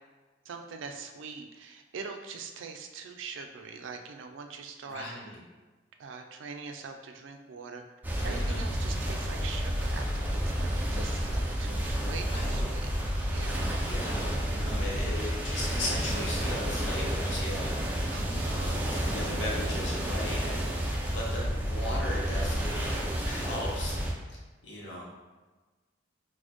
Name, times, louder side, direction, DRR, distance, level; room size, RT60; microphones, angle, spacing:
voice 1, 0.5-5.1 6.0-7.8 8.2-12.9 13.3-13.7 18.1-18.6, right 5 dB, 85° right, 5 dB, 0.4 m, -43 dB
voice 2, 4.9-5.4 8.2-8.6 12.2-12.7 13.8-24.0 24.6-25.1, left 1 dB, 70° left, -4 dB, 0.9 m, -38 dB
sound 1, 8.0-24.1, equal, 10° right, 0.4 m, -30 dB
4.0 x 2.1 x 2.9 m, 1.3 s
head